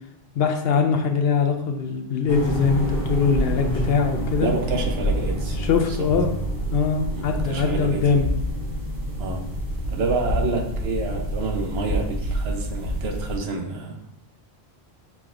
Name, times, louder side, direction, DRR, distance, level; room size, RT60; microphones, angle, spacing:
voice 1, 0.4-4.5 5.6-6.3 6.7-8.3, left 6 dB, 70° left, 5 dB, 0.8 m, -22 dB
sound 1, 2.3-13.4, equal, 55° right, 1.2 m, -27 dB
voice 2, 4.4-5.6 7.1-8.0 9.2-9.4 9.9-13.9, right 3 dB, 70° right, 3 dB, 0.9 m, -28 dB
6.1 x 3.3 x 2.5 m, 0.80 s
omnidirectional pair, 1.1 m